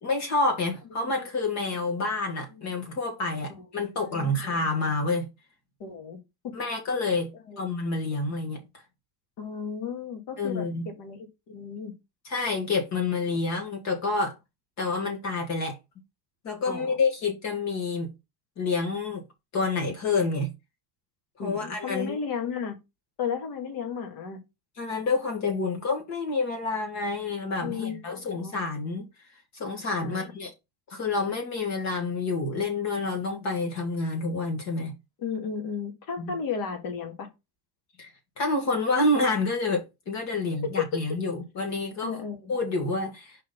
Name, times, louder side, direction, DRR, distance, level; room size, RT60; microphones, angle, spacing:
voice 1, 0.0-5.3 6.5-7.3 7.6-8.6 10.4-10.9 12.3-14.3 14.8-15.8 16.4-18.1 18.6-19.2 19.5-20.5 21.4-22.2 24.8-29.0 29.6-30.5 30.9-34.9 36.2-36.3 38.0-38.1 38.4-42.2 42.5-43.4, left 3 dB, 45° left, 1.9 m, -28 dB
voice 2, 1.7-2.1 2.5-2.7 3.7-4.6 5.8-6.2 6.4-6.5 7.5-7.6 9.4-12.0 16.7-17.0 21.4-22.8 23.2-24.4 27.6-28.6 30.0-30.3 35.2-37.3 40.6-41.0 42.0-42.5, left 6 dB, 75° left, 2.3 m, -34 dB
5.3 x 4.1 x 5.4 m
cardioid pair, 165°, 39 cm